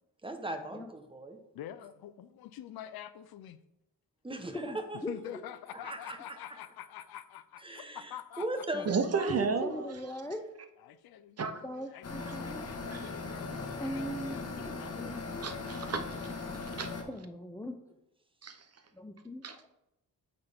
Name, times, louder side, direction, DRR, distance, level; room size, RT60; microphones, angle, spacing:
voice 1, 0.2-1.4 4.2-5.0 5.7-6.6 7.6-9.4, right 1 dB, 15° right, 6 dB, 0.9 m, -39 dB
voice 2, 1.6-3.6 5.1-8.4 10.9-11.4 11.9-12.0 12.4-14.0 14.3-15.1, left 11 dB, 80° left, 14 dB, 0.5 m, -46 dB
voice 3, 4.5-5.4 8.7-8.8 9.2-10.4 11.6-12.7 13.3-15.4 17.1-17.8 18.9-19.7, equal, 10° left, 5 dB, 0.5 m, -40 dB
voice 4, 8.9-9.9 11.4-11.6 12.9-13.1 15.4-16.9 18.4-18.6 19.4-19.6, right 5 dB, 40° right, 8 dB, 0.7 m, -33 dB
sound 1, 12.0-17.0, left 3 dB, 45° left, 1.3 m, -39 dB
8.6 x 4.1 x 3.5 m, 0.87 s
cardioid pair, 85°, 36 cm